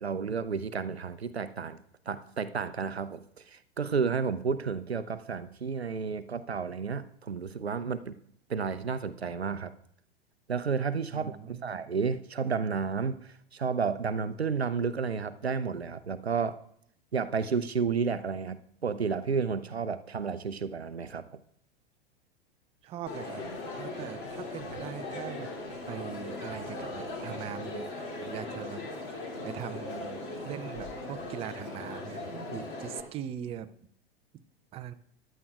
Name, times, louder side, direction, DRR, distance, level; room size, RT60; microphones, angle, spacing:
voice 1, 0.0-1.8 2.1-8.2 8.5-9.7 10.5-16.6 17.1-21.4, right 5 dB, 85° right, 13 dB, 0.6 m, -31 dB
voice 2, 11.1-11.7 22.8-23.5 23.8-25.5 25.9-33.7 34.7-34.9, right 10 dB, 20° right, 11 dB, 0.5 m, -41 dB
Crowd, 23.1-33.0, left 2 dB, 35° left, 2.6 m, -39 dB
15.0 x 11.0 x 2.4 m, 0.68 s
figure-of-eight pair, 95°, 31 cm